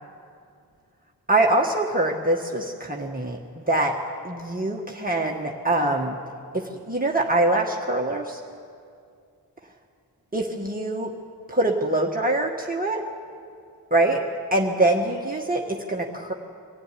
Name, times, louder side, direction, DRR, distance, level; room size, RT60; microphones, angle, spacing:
voice 1, 1.3-3.4 3.7-4.0 4.2-6.2 6.5-8.4 10.3-11.1 11.5-13.0 13.9-14.2 14.5-16.3, right 2 dB, 20° right, -1 dB, 1.5 m, -24 dB
24.0 x 15.5 x 10.0 m, 2.4 s
wide cardioid pair, 95°, 38 cm